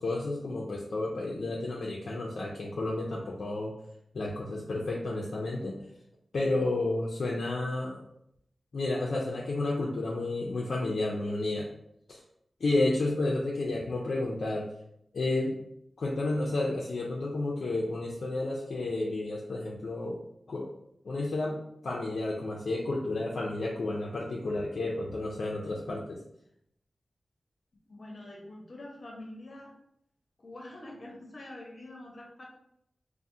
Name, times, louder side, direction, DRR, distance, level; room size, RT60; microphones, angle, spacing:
voice 1, 0.0-3.7 4.1-5.8 6.3-8.0 8.7-11.6 12.1-12.2 12.6-14.6 15.1-15.6 16.0-20.2 20.5-20.7 21.1-21.6 21.8-26.2, left 2 dB, 75° left, -3 dB, 0.4 m, -31 dB
voice 2, 27.9-29.7 30.4-32.5, left 1 dB, 50° left, -1 dB, 0.8 m, -45 dB
3.4 x 2.0 x 2.6 m, 0.75 s
wide cardioid pair, 95°, 0 cm